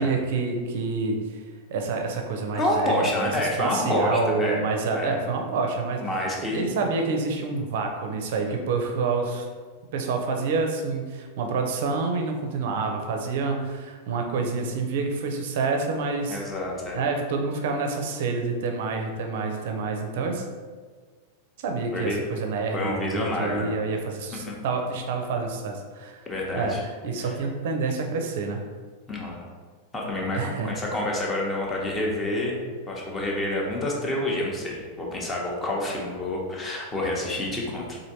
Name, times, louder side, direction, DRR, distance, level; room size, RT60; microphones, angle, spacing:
voice 1, 0.0-1.4 1.7-3.3 3.6-6.0 6.4-9.5 9.9-16.4 16.9-20.5 21.6-26.3 26.5-28.6 30.3-30.7, right 4 dB, 55° right, 3 dB, 0.5 m, -28 dB
voice 2, 2.5-4.6 4.9-5.2 6.0-6.8 16.3-17.0 21.9-22.2 22.7-23.8 24.5-24.6 26.3-26.8 27.2-27.3 29.1-29.4 29.9-32.6 32.9-38.0, left 1 dB, 20° left, -2 dB, 0.8 m, -28 dB
4.3 x 2.6 x 2.7 m, 1.5 s
figure-of-eight pair, 90°, 0 cm